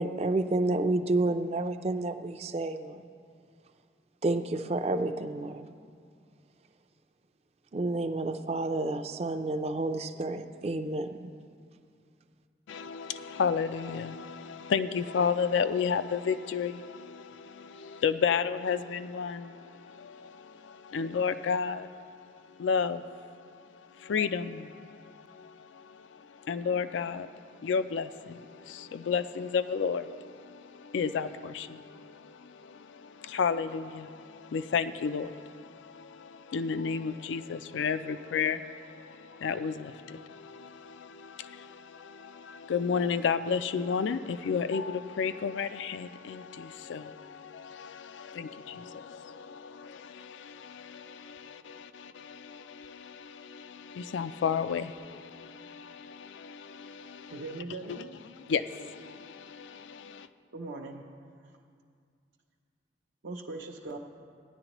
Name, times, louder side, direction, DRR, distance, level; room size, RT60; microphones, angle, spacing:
voice 1, 0.0-3.0 4.2-5.7 7.7-11.3, right 2 dB, 35° right, 8 dB, 0.4 m, -30 dB
voice 2, 12.7-57.4 57.9-58.0 58.4-60.3, left 6 dB, 90° left, 12 dB, 0.4 m, -33 dB
voice 3, 57.3-58.2 60.5-61.0 61.5-61.6 63.2-64.0, right 3 dB, 80° right, -2 dB, 0.6 m, -40 dB
17.0 x 10.5 x 3.0 m, 2.2 s
head